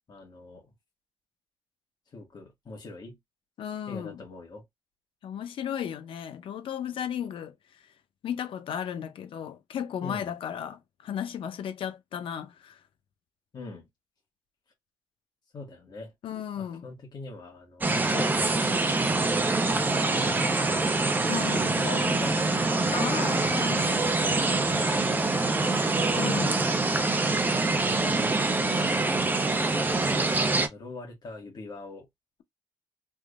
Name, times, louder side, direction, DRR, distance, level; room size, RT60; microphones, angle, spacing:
voice 1, 0.1-0.7 2.1-3.2 3.9-4.7 10.0-10.3 13.5-13.9 15.5-16.1 16.6-18.9 19.7-21.1 21.6-22.7 23.6-25.9 27.7-28.9 30.7-32.1, left 3 dB, 55° left, 1.7 m, -42 dB
voice 2, 3.6-4.2 5.2-7.5 8.2-12.8 16.2-16.8 21.3-21.8 22.9-24.2 26.2-26.6, left 9 dB, 85° left, 0.6 m, -35 dB
sound 1, 17.8-30.7, right 3 dB, 20° right, 0.7 m, -25 dB
3.6 x 3.0 x 2.4 m
cardioid pair, 110°, 9 cm